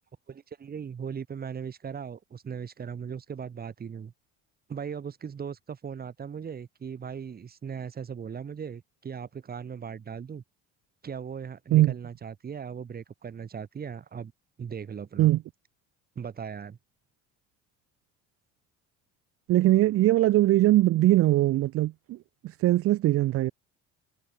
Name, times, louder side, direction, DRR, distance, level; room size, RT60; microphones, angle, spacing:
voice 1, 0.3-4.1 4.7-10.4 11.0-14.3 14.6-15.3 16.1-16.8, right 7 dB, 30° right, 6.3 m, -38 dB
voice 2, 19.5-22.2 22.4-23.5, right 15 dB, 50° right, 0.7 m, -21 dB
cardioid pair, 135°, 30 cm